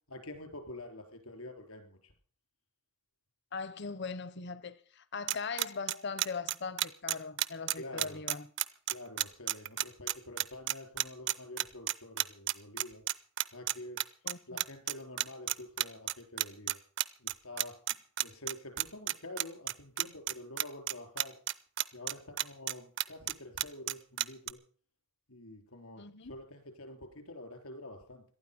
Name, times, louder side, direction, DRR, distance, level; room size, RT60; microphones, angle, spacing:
voice 1, 0.1-2.1 7.7-8.2 8.9-13.0 13.5-14.0 14.5-16.8 17.2-17.8 18.2-21.4 21.9-24.6 25.3-28.2, left 1 dB, 80° left, 3.9 m, -47 dB
voice 2, 3.5-8.5 14.2-14.6 26.0-26.3, left 4 dB, 50° left, 0.8 m, -40 dB
sound 1, 5.3-24.5, right 14 dB, 55° right, 0.6 m, -31 dB
18.5 x 12.5 x 5.3 m
head